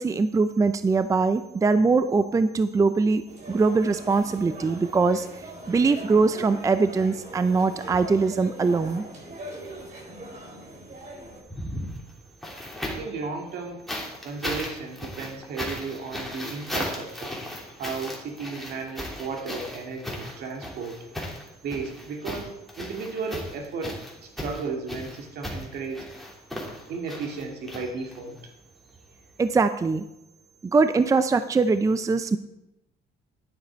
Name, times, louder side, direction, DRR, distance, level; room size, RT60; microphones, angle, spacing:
voice 1, 0.0-3.2 3.5-5.3 5.7-9.0 29.4-30.0 30.7-32.4, right 4 dB, 20° right, 11 dB, 0.5 m, -22 dB
sound 1, 3.3-11.4, right 1 dB, 45° right, 4.3 m, -41 dB
sound 2, 11.4-13.2 13.9-28.4 29.5-29.6, left 1 dB, ahead, 3.0 m, -36 dB
voice 2, 12.9-13.9 14.2-17.4 17.8-21.1 21.6-26.1 26.9-28.5, right 4 dB, 70° right, 3 dB, 2.2 m, -34 dB
11.0 x 9.3 x 4.5 m, 0.87 s
cardioid pair, 110°, 17 cm